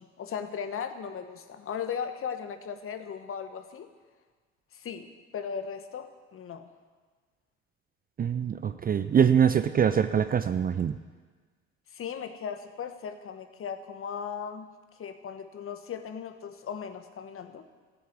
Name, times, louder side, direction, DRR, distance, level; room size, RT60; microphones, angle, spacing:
voice 1, 0.0-3.9 4.7-6.7 11.9-14.7 15.0-17.6, left 7 dB, 40° left, 9 dB, 1.4 m, -37 dB
voice 2, 8.2-10.9, right 8 dB, 25° right, 11 dB, 0.6 m, -24 dB
15.0 x 7.0 x 8.9 m, 1.4 s
hypercardioid pair, 70°, 35 cm